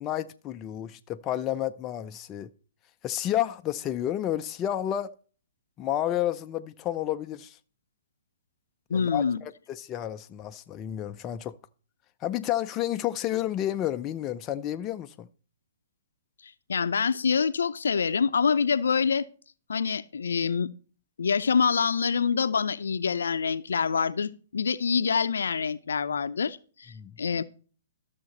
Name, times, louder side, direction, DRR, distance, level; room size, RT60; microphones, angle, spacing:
voice 1, 0.0-2.5 3.0-5.1 5.8-7.6 8.9-11.6 12.2-15.3 26.9-27.2, left 12 dB, 25° left, 0.6 m, -31 dB
voice 2, 8.9-9.4 16.7-19.2 19.7-20.7 21.2-26.9 27.2-27.4, left 6 dB, 75° left, 0.7 m, -26 dB
13.0 x 6.8 x 4.2 m
hypercardioid pair, 125°, 0 cm